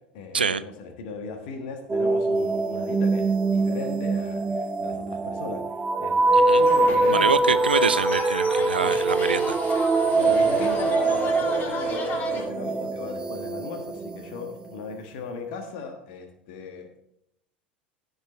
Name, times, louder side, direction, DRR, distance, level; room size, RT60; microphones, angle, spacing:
voice 1, 0.1-7.6 8.8-8.9 10.1-17.0, left 4 dB, 60° left, 5 dB, 1.5 m, -36 dB
sound 1, 1.9-14.6, right 3 dB, 15° right, 0.5 m, -23 dB
sound 2, 6.5-12.4, left 4 dB, 40° left, 1.8 m, -35 dB
voice 2, 7.1-9.6, right 5 dB, 85° right, 15 dB, 0.4 m, -25 dB
15.5 x 5.5 x 4.3 m, 0.76 s
figure-of-eight pair, 75°, 5 cm